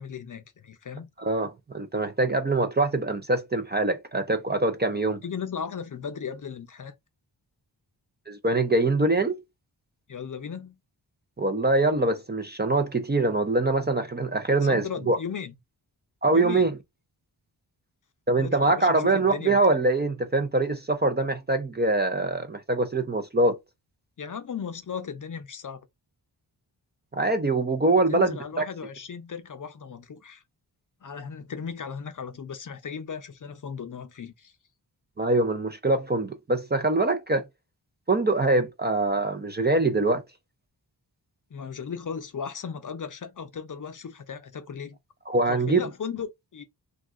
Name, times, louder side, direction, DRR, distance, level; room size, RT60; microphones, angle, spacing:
voice 1, 0.0-1.1 5.2-6.9 10.1-10.8 14.6-15.5 16.3-16.7 18.4-19.6 24.2-25.9 28.1-30.4 31.0-34.5 41.5-45.0 45.5-46.6, left 6 dB, 45° left, 0.6 m, -36 dB
voice 2, 1.2-5.2 8.3-9.4 11.4-15.2 16.2-16.7 18.3-23.6 27.1-28.6 35.2-37.5 38.1-40.2 45.3-45.8, right 2 dB, 25° right, 0.4 m, -24 dB
2.5 x 2.3 x 3.5 m
wide cardioid pair, 75°, 43 cm